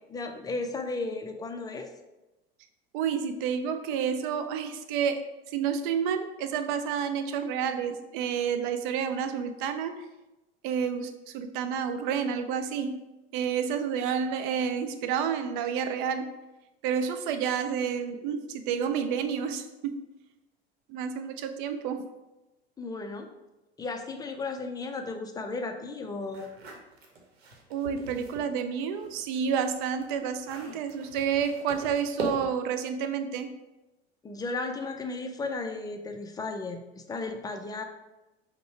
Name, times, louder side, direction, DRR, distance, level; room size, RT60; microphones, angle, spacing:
voice 1, 0.1-1.9 22.8-23.3 23.8-26.5 34.2-37.8, left 3 dB, 10° left, 5 dB, 0.4 m, -34 dB
voice 2, 2.9-5.2 5.5-10.1 10.6-13.0 13.3-16.3 16.8-20.0 20.9-22.0 27.7-33.5, right 7 dB, 55° right, 8 dB, 0.6 m, -30 dB
sound 1, 26.3-28.5 28.9-32.7, right 2 dB, 70° right, 0.9 m, -41 dB
5.3 x 2.2 x 4.3 m, 1.0 s
figure-of-eight pair, 75°, 31 cm